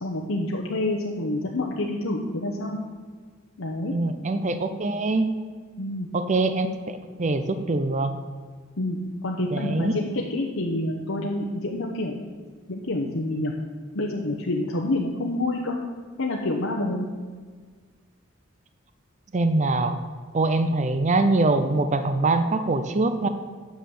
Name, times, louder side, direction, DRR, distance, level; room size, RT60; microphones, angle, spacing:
voice 1, 0.0-2.8 3.6-3.9 5.8-6.1 8.8-12.2 12.7-13.5 13.9-15.8 16.2-17.1, left 1 dB, 80° left, -1 dB, 1.0 m, -27 dB
voice 2, 3.9-5.3 6.1-8.1 9.5-9.9 19.3-20.0 20.3-23.3, right 2 dB, 35° right, 9 dB, 0.6 m, -23 dB
9.3 x 6.3 x 7.0 m, 1.5 s
head